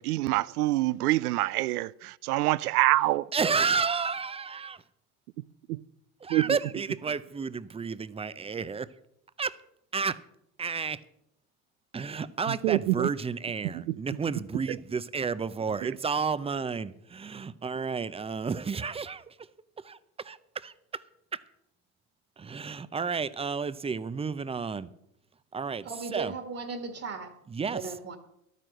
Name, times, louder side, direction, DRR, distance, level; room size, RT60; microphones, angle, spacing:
voice 1, 0.0-3.3 5.7-5.8 6.3-6.6 12.5-13.1 13.7-13.8, right 17 dB, 80° right, 0.6 m, -26 dB
voice 2, 3.3-4.8 6.2-8.9 9.4-9.6 9.9-10.2 10.6-11.0 11.9-19.5 19.8-21.0 21.3-21.4 22.4-24.9 25.5-26.3 27.5-27.9, right 5 dB, 15° right, 0.5 m, -31 dB
voice 3, 25.9-27.3 27.7-28.2, right 4 dB, 30° right, 1.8 m, -36 dB
12.0 x 9.3 x 6.3 m
hypercardioid pair, 80°, 46 cm